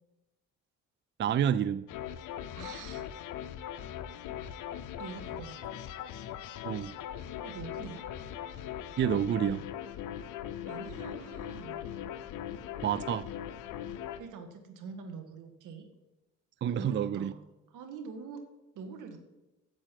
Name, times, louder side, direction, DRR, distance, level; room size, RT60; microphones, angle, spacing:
voice 1, 1.2-1.9 6.6-6.9 9.0-9.6 12.8-13.3 16.6-17.3, right 9 dB, 40° right, 0.4 m, -28 dB
sound 1, 1.9-14.2, left 10 dB, 80° left, 0.8 m, -40 dB
voice 2, 2.5-3.1 5.0-5.7 7.4-8.0 10.7-11.9 14.2-15.9 16.6-17.4 17.7-18.4 18.8-19.2, right 5 dB, 75° right, 1.9 m, -44 dB
8.9 x 7.8 x 7.5 m
cardioid pair, 85°, 31 cm